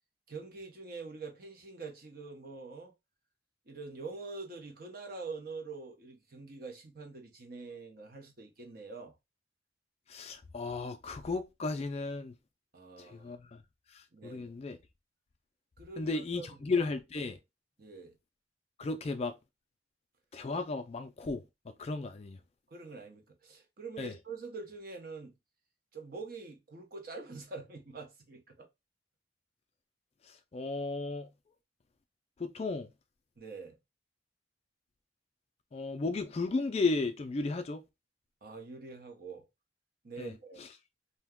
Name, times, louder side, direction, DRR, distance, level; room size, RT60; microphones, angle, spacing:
voice 1, 0.3-2.9 3.7-9.1 12.7-13.4 14.1-14.5 15.8-16.6 17.8-18.2 22.7-25.3 25.9-28.7 33.4-33.8 38.4-39.4 40.0-40.7, right 4 dB, 50° right, 0.7 m, -45 dB
voice 2, 10.1-12.3 13.0-13.6 13.9-14.8 16.0-17.4 18.8-19.3 20.3-22.4 24.0-24.1 30.2-31.3 32.4-32.9 35.7-37.8 40.2-40.7, left 3 dB, 35° left, 0.3 m, -35 dB
2.7 x 2.2 x 3.5 m
head